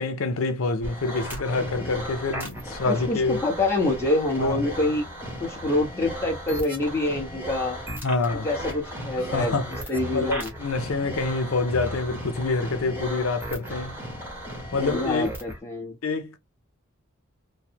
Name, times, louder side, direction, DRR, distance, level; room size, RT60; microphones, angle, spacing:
voice 1, 0.0-3.4 4.4-4.7 8.0-8.5 9.2-9.7 10.1-14.0 14.7-15.3 16.0-16.4, left 3 dB, 85° left, 0.6 m, -26 dB
sound 1, 0.8-15.6, equal, 10° right, 1.0 m, -36 dB
voice 2, 2.8-5.0 5.4-7.8 8.4-9.5 9.9-10.5 14.7-16.0, left 2 dB, 15° left, 1.0 m, -26 dB
3.1 x 2.1 x 2.7 m
head